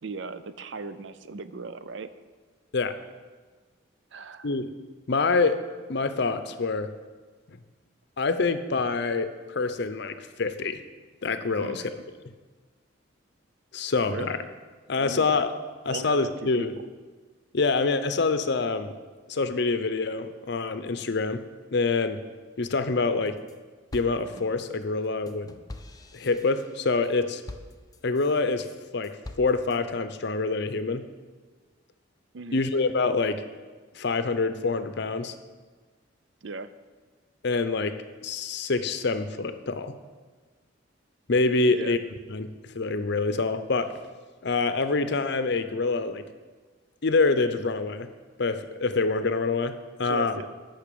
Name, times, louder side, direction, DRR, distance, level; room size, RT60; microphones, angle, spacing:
voice 1, 0.0-2.1 4.1-4.5 11.6-11.9 14.1-14.4 15.0-15.3 15.9-16.7 32.3-32.6 36.4-36.7 41.7-42.0 50.0-50.5, right 4 dB, 65° right, 12 dB, 0.5 m, -37 dB
voice 2, 5.1-5.6 5.9-6.9 8.2-10.8 11.2-11.8 12.2-12.3 13.7-14.4 14.9-15.5 15.8-16.7 17.5-18.9 19.3-21.4 21.7-22.2 22.6-23.4 23.9-25.6 26.1-27.4 28.0-28.7 28.9-31.1 32.5-33.4 33.9-35.3 37.4-38.0 38.2-40.0 41.3-42.0 42.3-43.9 44.4-46.2 47.0-48.1 48.4-50.3, left 3 dB, 60° left, 10 dB, 0.7 m, -26 dB
sound 1, 23.0-23.6 23.9-28.4 28.8-29.8, left 2 dB, 20° left, 0.5 m, -45 dB
10.5 x 5.8 x 6.9 m, 1.4 s
head